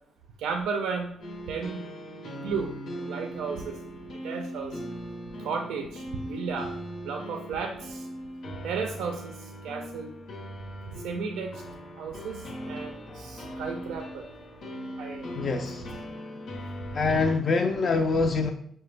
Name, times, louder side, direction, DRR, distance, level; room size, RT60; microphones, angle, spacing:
voice 1, 0.4-1.1 1.5-1.8 2.2-2.7 3.1-3.8 4.2-4.8 5.4-6.7 7.0-8.1 8.6-9.3 9.6-10.1 11.0-11.5 12.0-12.4 12.7-14.2 15.0-15.3 15.5-15.6 17.1-17.2, right 5 dB, 85° right, 4 dB, 0.4 m, -33 dB
sound 1, 1.2-17.4, equal, 80° left, 0.8 m, -39 dB
voice 2, 15.4-15.8 16.9-18.5, left 4 dB, 45° left, 4 dB, 0.3 m, -25 dB
5.7 x 2.1 x 3.2 m, 0.67 s
cardioid pair, 90°, 0 cm